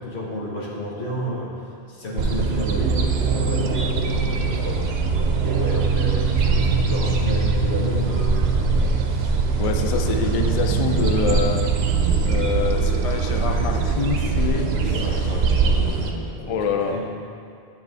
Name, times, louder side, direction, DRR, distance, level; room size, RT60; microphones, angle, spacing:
voice 1, 0.0-8.5 9.6-10.3 15.0-17.1, equal, 85° left, -5 dB, 1.5 m, -32 dB
sound 1, 2.2-16.1, right 5 dB, 75° right, 0.8 m, -22 dB
sound 2, 6.5-11.7, left 3 dB, 35° left, 0.9 m, -31 dB
sound 3, 8.8-11.2 12.9-15.3, equal, 15° left, 1.8 m, -39 dB
voice 2, 9.6-11.7 12.2-15.0 16.5-17.0, left 6 dB, 55° left, 5 dB, 0.4 m, -26 dB
8.0 x 5.1 x 3.3 m, 2.3 s
omnidirectional pair, 1.1 m